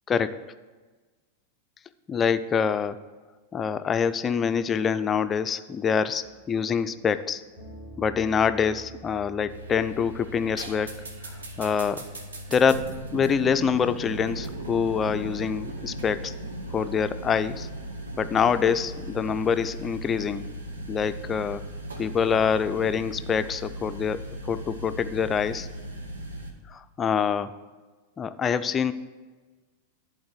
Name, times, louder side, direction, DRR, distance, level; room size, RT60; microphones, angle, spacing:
voice 1, 0.1-0.4 2.1-3.0 3.5-7.4 8.0-12.1 12.5-16.3 16.7-17.7 18.2-20.4 20.9-21.6 22.0-25.7 26.7-27.5 28.2-28.9, left 6 dB, 20° left, 11 dB, 0.4 m, -25 dB
sound 1, 6.2-12.0, right 2 dB, 45° right, 2.7 m, -49 dB
sound 2, 9.5-26.5, right 1 dB, 70° right, 1.0 m, -37 dB
11.0 x 4.0 x 7.8 m, 1.3 s
figure-of-eight pair, 90°, 0 cm